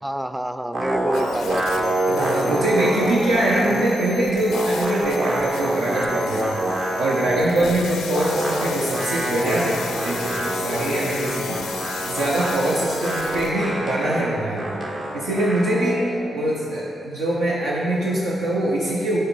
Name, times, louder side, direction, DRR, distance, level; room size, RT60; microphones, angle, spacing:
voice 1, 0.0-2.9 3.6-3.9, right 1 dB, 10° right, 10 dB, 0.4 m, -29 dB
sound 1, 0.7-4.0 4.3-7.6 8.1-16.1, right 1 dB, 65° right, 1.3 m, -26 dB
sound 2, 1.1-13.5, left 6 dB, 85° left, 0.5 m, -36 dB
voice 2, 2.1-11.6 12.0-14.8 15.1-19.2, right 1 dB, 85° right, -6 dB, 0.8 m, -23 dB
6.5 x 4.6 x 6.0 m, 2.7 s
supercardioid pair, 45°, 0 cm